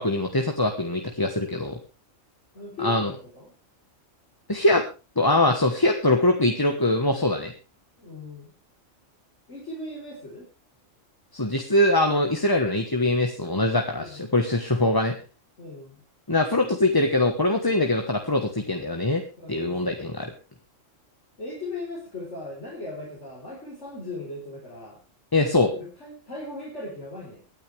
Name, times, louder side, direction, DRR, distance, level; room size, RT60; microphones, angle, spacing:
voice 1, 0.0-1.8 2.8-3.1 4.5-4.8 5.2-7.5 11.3-15.1 16.3-19.2 19.5-20.3 25.3-25.7, left 1 dB, 20° left, 4 dB, 1.3 m, -23 dB
voice 2, 2.5-3.5 8.0-8.5 9.5-10.5 13.9-14.3 15.6-16.0 19.4-20.3 21.4-25.0 25.7-27.4, left 2 dB, 60° left, -4 dB, 4.6 m, -38 dB
24.0 x 9.5 x 3.4 m, 0.32 s
omnidirectional pair, 1.3 m